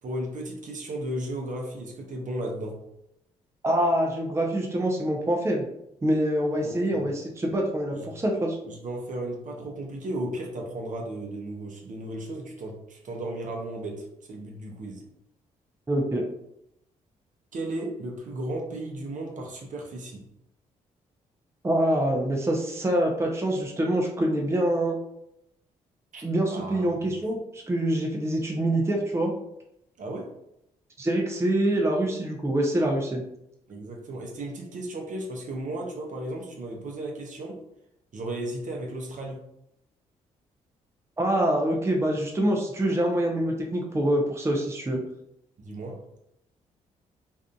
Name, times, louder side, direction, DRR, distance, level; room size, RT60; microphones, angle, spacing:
voice 1, 0.0-2.8 6.6-7.1 7.9-8.2 8.6-15.0 17.5-20.2 26.1-26.2 26.5-26.8 27.1-27.2 30.0-30.3 33.7-37.6 38.1-39.5 45.6-46.0, right 1 dB, 50° right, 0 dB, 0.7 m, -35 dB
voice 2, 3.6-5.7 6.0-8.6 15.9-16.2 21.6-24.9 26.2-29.3 31.0-33.2 41.2-45.0, right 1 dB, 15° right, 0 dB, 0.5 m, -25 dB
2.6 x 2.4 x 2.3 m, 0.79 s
hypercardioid pair, 50°, 16 cm